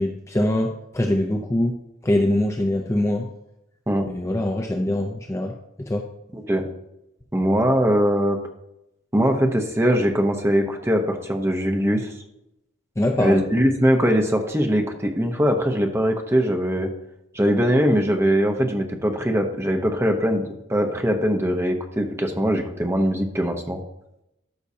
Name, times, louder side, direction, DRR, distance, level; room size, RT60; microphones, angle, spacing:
voice 1, 0.0-3.3 4.1-5.5 5.8-6.1 13.0-13.4, left 1 dB, 15° left, 3 dB, 0.5 m, -23 dB
voice 2, 6.3-6.6 7.3-8.4 9.1-12.1 13.2-16.9 17.3-23.8, equal, 15° right, 3 dB, 0.8 m, -21 dB
13.0 x 5.6 x 2.8 m, 0.85 s
head